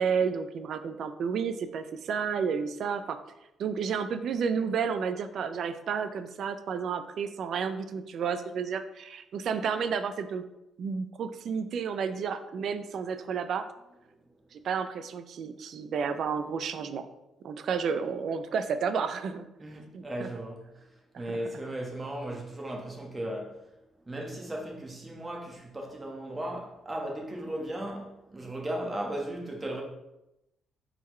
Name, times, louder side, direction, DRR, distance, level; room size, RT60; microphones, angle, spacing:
voice 1, 0.0-3.2 3.6-10.4 10.8-13.6 14.5-17.0 17.4-19.5 19.9-20.3 21.1-21.4, right 6 dB, 65° right, 0.4 m, -31 dB
voice 2, 19.6-20.6 21.2-23.5 24.1-29.8, right 1 dB, 20° right, 1.1 m, -36 dB
4.3 x 3.8 x 3.1 m
cardioid pair, 90°, 0 cm